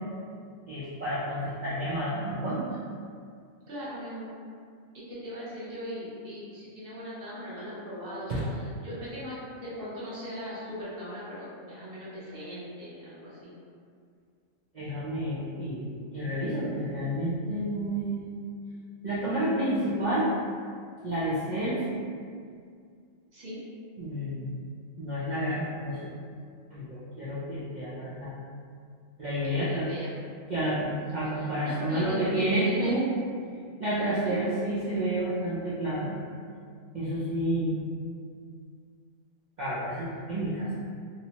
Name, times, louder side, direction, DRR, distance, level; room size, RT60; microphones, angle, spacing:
voice 1, 0.7-2.7 8.3-8.4 14.7-18.2 19.0-20.3 21.0-22.0 24.0-24.6 25.0-26.1 26.7-28.3 29.2-29.9 30.5-33.0 33.8-36.1 36.9-37.9 39.6-40.7, right 1 dB, 80° right, -10 dB, 0.4 m, -30 dB
voice 2, 3.7-4.3 4.9-13.5 23.3-23.6 29.4-30.1 31.3-33.0 34.2-34.3, equal, 50° right, -10 dB, 1.0 m, -39 dB
2.8 x 2.0 x 2.8 m, 2.2 s
omnidirectional pair, 1.4 m